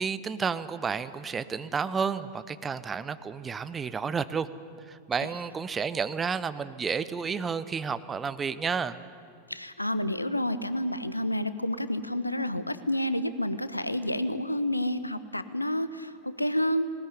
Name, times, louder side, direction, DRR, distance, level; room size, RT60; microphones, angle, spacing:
voice 1, 0.0-4.5 4.9-9.0, right 6 dB, 20° right, 13 dB, 0.8 m, -31 dB
voice 2, 9.5-16.9, left 1 dB, 85° left, 13 dB, 0.8 m, -29 dB
19.0 x 19.0 x 9.7 m, 2.2 s
figure-of-eight pair, 90°, 0 cm